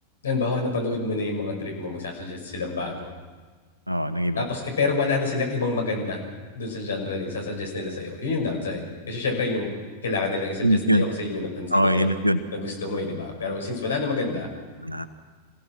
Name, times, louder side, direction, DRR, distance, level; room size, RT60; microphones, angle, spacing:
voice 1, 0.2-3.1 4.3-6.2 6.6-9.7 10.0-12.1 12.5-14.5, left 3 dB, 65° left, 1 dB, 6.0 m, -28 dB
voice 2, 3.9-4.4 10.6-11.1 11.7-12.4 14.8-15.1, equal, 85° right, 11 dB, 1.2 m, -22 dB
27.5 x 16.5 x 6.2 m, 1.4 s
figure-of-eight pair, 90°, 0 cm